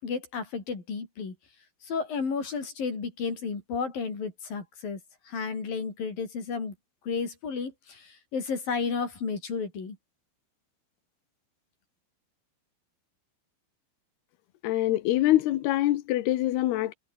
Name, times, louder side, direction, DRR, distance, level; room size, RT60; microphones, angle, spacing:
voice 1, 0.0-1.4 1.8-5.0 5.3-6.8 7.1-10.0, left 5 dB, 45° left, 7.0 m, -32 dB
voice 2, 14.6-16.9, left 15 dB, 70° left, 2.7 m, -24 dB
omnidirectional pair, 5.8 m